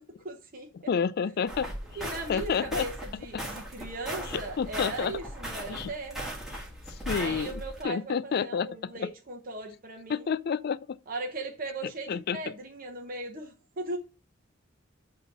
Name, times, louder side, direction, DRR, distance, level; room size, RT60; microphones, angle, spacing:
voice 1, 0.0-0.7 2.0-6.3 7.1-10.3 11.1-14.0, right 2 dB, 45° right, 0.9 m, -38 dB
voice 2, 0.8-1.7 2.3-2.9 3.3-3.5 4.3-5.2 5.7-5.9 6.5-6.6 6.9-9.1 10.1-11.0 12.1-12.5, left 6 dB, 50° left, 0.3 m, -30 dB
sound 1, 1.5-7.8, right 1 dB, ahead, 1.5 m, -38 dB
7.9 x 2.9 x 5.9 m
head